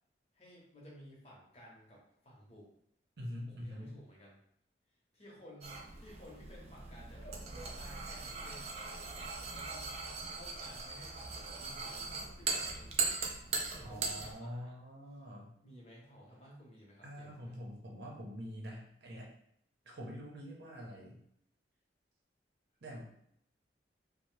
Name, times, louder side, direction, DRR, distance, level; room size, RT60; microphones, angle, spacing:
voice 1, 0.3-2.7 3.5-4.4 5.1-9.9 10.4-13.2 13.7-14.8 15.1-15.2 15.6-17.5, equal, 35° left, -4 dB, 0.8 m, -55 dB
voice 2, 3.2-3.9 13.8-15.5 17.0-19.3 19.9-21.2 22.8-23.3, equal, 65° right, -1 dB, 0.7 m, -45 dB
sound 1, 5.6-14.3, right 4 dB, 35° right, 0.4 m, -39 dB
2.7 x 2.0 x 3.1 m, 0.71 s
head